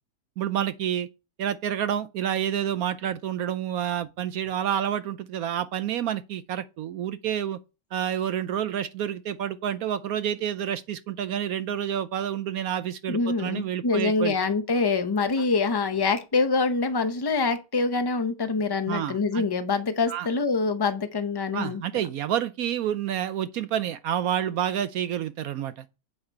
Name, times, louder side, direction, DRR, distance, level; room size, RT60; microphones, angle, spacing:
voice 1, 0.4-1.1 1.4-7.6 7.9-14.3 18.9-19.4 20.1-20.3 21.5-25.8, right 10 dB, 70° right, 1.0 m, -29 dB
voice 2, 13.1-21.8, left 4 dB, 40° left, 0.3 m, -25 dB
8.8 x 5.7 x 4.5 m
omnidirectional pair, 1.8 m